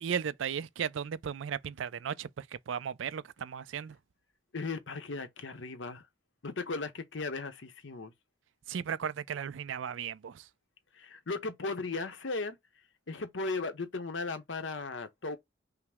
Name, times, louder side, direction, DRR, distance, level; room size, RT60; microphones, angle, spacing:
voice 1, 0.0-4.0 8.7-10.4, right 7 dB, 80° right, 0.4 m, -36 dB
voice 2, 4.5-6.0 6.4-8.1 10.9-12.6 13.1-15.4, left 3 dB, 75° left, 0.9 m, -36 dB
5.8 x 2.1 x 3.5 m
head